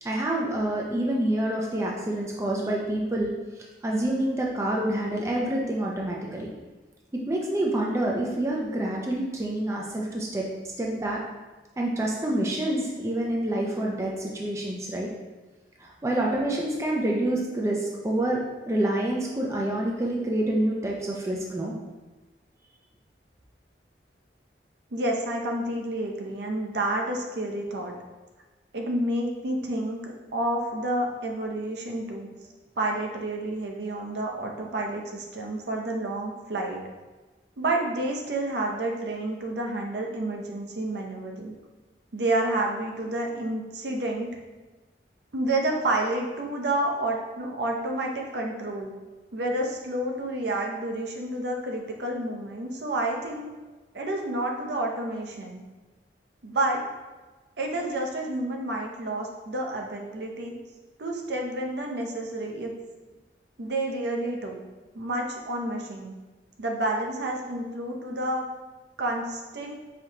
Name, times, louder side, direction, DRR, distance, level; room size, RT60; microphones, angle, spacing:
voice 1, 0.0-3.3 3.8-6.5 7.3-10.5 10.8-11.2 11.8-15.1 15.8-21.7, right 1 dB, 15° right, -2 dB, 0.4 m, -27 dB
voice 2, 24.9-27.9 28.7-32.3 32.8-36.8 37.6-41.5 42.1-44.3 45.3-48.9 49.3-53.5 53.9-55.6 56.4-56.8 57.6-60.5 61.0-62.7 63.6-64.6 64.9-66.2 66.6-68.4 69.0-69.7, right 1 dB, 70° right, 1 dB, 0.6 m, -29 dB
5.0 x 2.9 x 2.7 m, 1.2 s
head